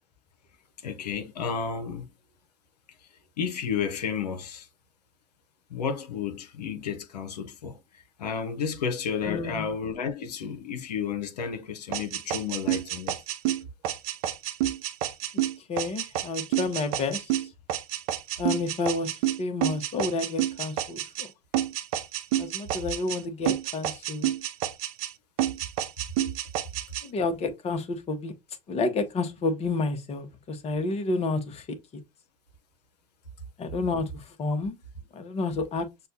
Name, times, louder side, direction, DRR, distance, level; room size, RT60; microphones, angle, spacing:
voice 1, 0.8-2.1 3.4-4.7 5.7-13.1, left 6 dB, 80° left, 0.7 m, -32 dB
voice 2, 9.3-9.7 15.6-17.5 18.4-21.3 22.4-24.3 27.0-28.3 28.7-32.0 33.6-34.8 35.1-35.9, left 3 dB, 30° left, 0.9 m, -30 dB
sound 1, 11.9-21.3 21.5-23.2 23.4-25.1 25.4-27.0, right 12 dB, 60° right, 0.6 m, -29 dB
6.5 x 2.3 x 2.7 m
hypercardioid pair, 80°, 20 cm